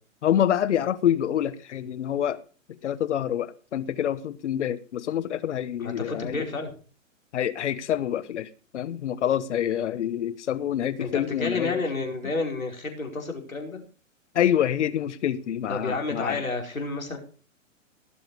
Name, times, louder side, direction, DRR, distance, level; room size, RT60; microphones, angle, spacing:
voice 1, 0.2-2.4 2.8-6.5 7.3-8.5 8.7-11.8 14.3-16.4, left 10 dB, 60° left, 1.4 m, -26 dB
voice 2, 5.8-6.7 11.0-13.8 15.7-17.2, left 3 dB, 85° left, 4.9 m, -30 dB
18.0 x 7.7 x 4.9 m
figure-of-eight pair, 120°, 40 cm